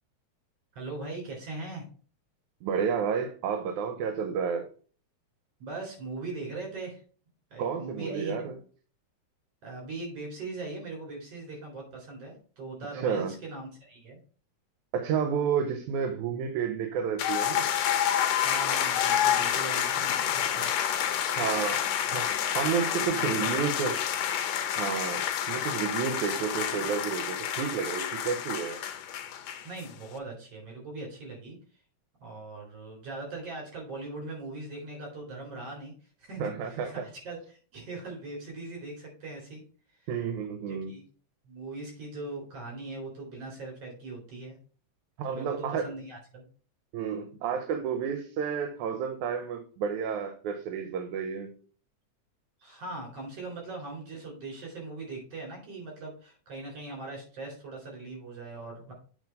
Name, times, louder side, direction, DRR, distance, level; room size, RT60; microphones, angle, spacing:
voice 1, 0.8-1.8 5.6-7.0 7.5-8.5 9.6-14.2 18.4-20.9 23.1-23.3 29.6-31.6 32.2-35.9 36.2-36.4 36.7-39.6 40.0-40.1 40.7-41.0 41.5-44.6 45.3-46.5 52.6-58.9, right 3 dB, 55° right, 0 dB, 4.8 m, -40 dB
voice 2, 2.6-4.7 7.6-8.6 12.9-13.3 14.9-17.7 21.3-21.8 22.1-24.0 24.8-28.8 36.4-37.0 40.1-41.0 45.2-45.9 46.9-51.5, right 7 dB, 80° right, 7 dB, 2.2 m, -31 dB
sound 1, 17.2-29.9, left 10 dB, 75° left, 1.9 m, -29 dB
8.1 x 4.1 x 5.1 m, 0.40 s
omnidirectional pair, 3.4 m